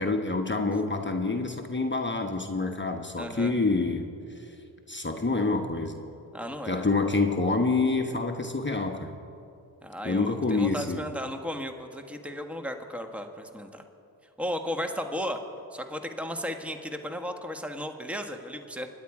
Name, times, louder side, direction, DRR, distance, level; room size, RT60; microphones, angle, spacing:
voice 1, 0.0-4.1 4.3-4.5 4.9-6.0 6.7-9.1 10.0-11.0, left 3 dB, 20° left, 4 dB, 1.2 m, -27 dB
voice 2, 3.2-3.5 6.3-6.9 9.8-13.8 14.4-15.4 15.7-18.9, equal, 5° right, 6 dB, 1.5 m, -35 dB
25.0 x 9.8 x 4.9 m, 2.7 s
hypercardioid pair, 40°, 49 cm